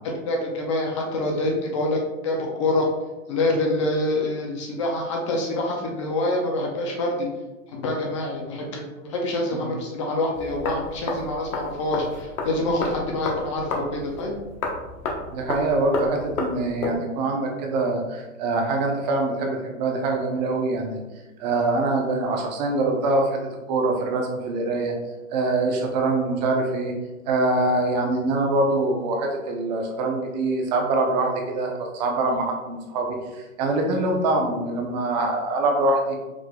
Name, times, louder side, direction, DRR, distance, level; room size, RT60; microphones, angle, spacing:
voice 1, 0.3-2.0 2.2-2.9 3.3-7.3 7.7-14.4, left 2 dB, 25° left, 0 dB, 0.4 m, -26 dB
sound 1, 10.3-17.0, left 3 dB, 75° left, 1.1 m, -32 dB
voice 2, 15.3-21.0 21.4-24.9 25.3-26.9 27.3-36.2, right 2 dB, 30° right, 2 dB, 0.7 m, -24 dB
4.8 x 3.5 x 2.3 m, 1.1 s
hypercardioid pair, 145°, 42 cm